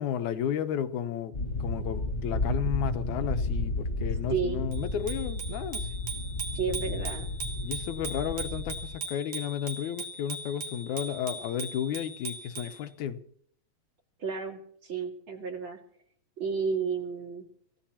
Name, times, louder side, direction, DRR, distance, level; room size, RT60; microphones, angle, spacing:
voice 1, 0.0-5.9 7.6-13.2, left 9 dB, 85° left, 2.4 m, -33 dB
sound 1, 1.3-9.0, left 2 dB, 30° left, 1.7 m, -32 dB
voice 2, 4.3-4.7 6.5-7.3 14.2-15.8 16.4-17.5, right 5 dB, 45° right, 2.9 m, -32 dB
Bicycle bell, 4.7-12.8, right 3 dB, 65° right, 3.4 m, -39 dB
27.5 x 16.5 x 2.9 m
omnidirectional pair, 3.4 m